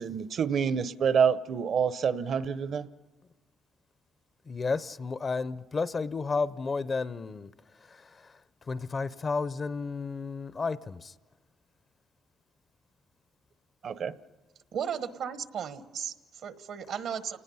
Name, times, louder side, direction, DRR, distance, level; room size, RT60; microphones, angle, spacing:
voice 1, 0.0-2.9 13.8-14.1, right 7 dB, 60° right, 0.8 m, -27 dB
voice 2, 4.5-7.5 7.9-8.3 8.7-11.1, left 4 dB, 40° left, 0.6 m, -32 dB
voice 3, 14.7-17.4, right 8 dB, 75° right, 1.3 m, -35 dB
29.0 x 19.5 x 5.6 m
cardioid pair, 90°, 0 cm